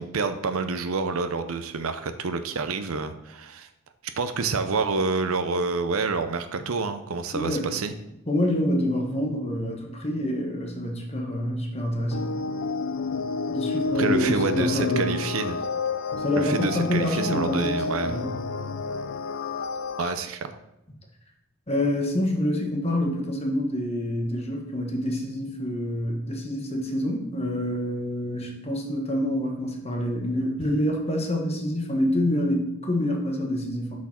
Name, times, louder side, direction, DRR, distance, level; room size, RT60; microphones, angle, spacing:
voice 1, 0.0-3.7 4.0-7.9 13.9-15.6 16.3-18.2 20.0-20.5, right 4 dB, 75° right, 9 dB, 0.6 m, -28 dB
voice 2, 7.3-7.7 8.3-12.3 13.5-15.1 16.2-18.3 21.7-33.9, left 1 dB, 30° left, 1 dB, 1.2 m, -27 dB
sound 1, 12.1-20.1, left 4 dB, 60° left, 0.4 m, -30 dB
6.1 x 6.1 x 4.4 m, 0.84 s
head